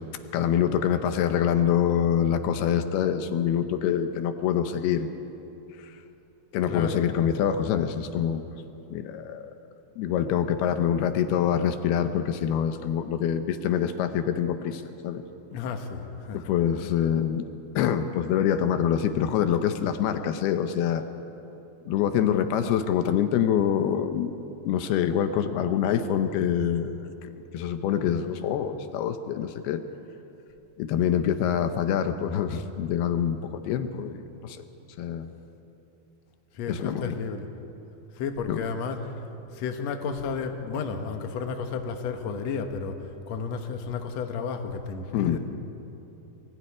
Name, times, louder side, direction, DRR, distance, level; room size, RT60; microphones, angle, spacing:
voice 1, 0.3-5.1 5.8-5.9 6.5-8.6 8.9-9.5 10.0-15.2 16.3-17.5 17.8-21.0 21.9-24.3 24.7-29.8 30.8-34.6 35.0-35.3 36.7-37.2 38.5-38.6 45.1-45.4, left 9 dB, 75° left, 9 dB, 2.7 m, -25 dB
voice 2, 6.7-7.1 15.5-16.5 36.5-37.5 38.2-39.0 39.5-43.0 43.3-45.4, left 5 dB, 60° left, 5 dB, 1.9 m, -32 dB
22.5 x 16.0 x 9.7 m, 3.0 s
omnidirectional pair, 4.8 m